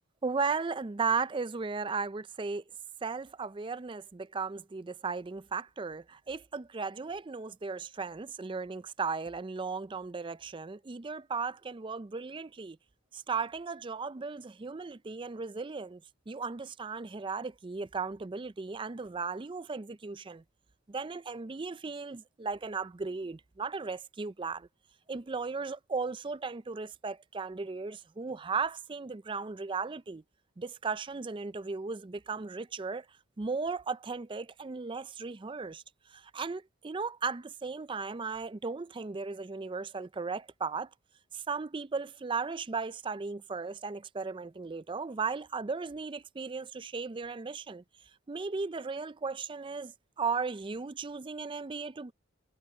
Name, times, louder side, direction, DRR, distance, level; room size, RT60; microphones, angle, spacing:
voice 1, 0.2-2.6 3.0-12.8 13.1-16.0 16.3-20.4 20.9-24.7 25.1-30.2 30.6-33.1 33.4-35.8 36.1-40.9 41.3-47.8 48.3-52.1, right 4 dB, 25° right, 0.4 m, -36 dB
head